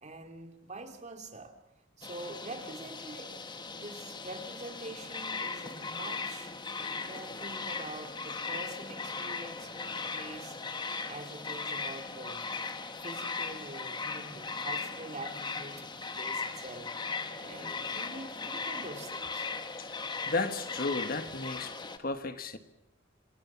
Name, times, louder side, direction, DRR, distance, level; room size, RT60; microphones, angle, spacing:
voice 1, 0.0-1.5 2.0-6.5 7.0-10.6 11.1-12.4 13.0-16.9 17.4-19.5, right 2 dB, 40° right, 2.5 m, -45 dB
sound 1, 2.0-22.0, left 4 dB, 25° left, 1.4 m, -38 dB
voice 2, 19.8-22.6, left 3 dB, 50° left, 1.4 m, -34 dB
27.0 x 19.5 x 7.2 m
head